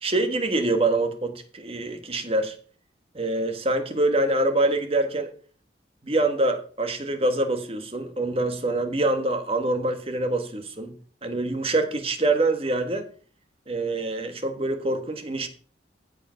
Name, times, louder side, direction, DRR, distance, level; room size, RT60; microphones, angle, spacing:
voice 1, 0.0-2.5 3.1-5.3 6.0-10.9 11.2-13.0 13.7-15.5, right 2 dB, 30° right, 7 dB, 1.5 m, -25 dB
15.0 x 5.2 x 5.7 m, 0.43 s
head